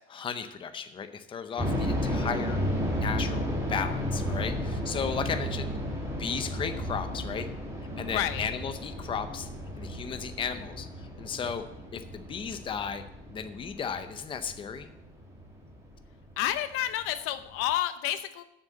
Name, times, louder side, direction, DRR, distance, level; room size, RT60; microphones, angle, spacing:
voice 1, 0.1-2.6 2.9-5.8 6.2-7.5 8.0-9.5 9.8-10.9 11.2-11.6 11.9-13.0 13.3-14.9, left 6 dB, 25° left, 9 dB, 0.6 m, -35 dB
sound 1, 1.6-16.4 16.7-16.8 17.4-17.7, equal, 15° right, 2.1 m, -33 dB
voice 2, 8.0-8.5 16.4-18.4, left 12 dB, 85° left, 11 dB, 0.8 m, -30 dB
7.3 x 6.4 x 7.7 m, 0.87 s
cardioid pair, 160°, 21 cm